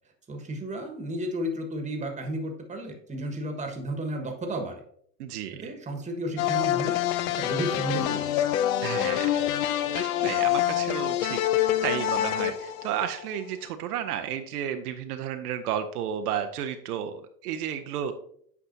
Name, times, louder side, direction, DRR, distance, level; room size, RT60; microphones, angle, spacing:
voice 1, 0.3-4.8 5.5-8.4, right 1 dB, 15° right, 4 dB, 1.4 m, -33 dB
voice 2, 5.2-5.6 8.8-9.4 9.9-18.1, right 9 dB, 65° right, 7 dB, 0.7 m, -32 dB
sound 1, 6.4-13.4, left 12 dB, 60° left, 0.6 m, -26 dB
8.4 x 5.4 x 2.7 m, 0.63 s
hypercardioid pair, 90°, 48 cm